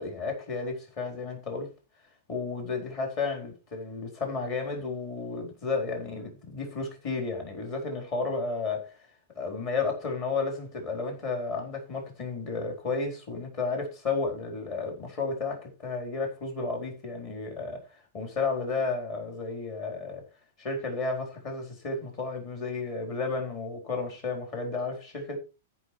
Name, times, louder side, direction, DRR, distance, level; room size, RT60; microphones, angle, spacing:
voice 1, 0.0-1.7 2.3-8.9 9.4-17.8 18.1-20.2 20.6-25.4, left 4 dB, 30° left, 4.3 m, -32 dB
14.0 x 5.7 x 4.7 m
supercardioid pair, 170°, 0 cm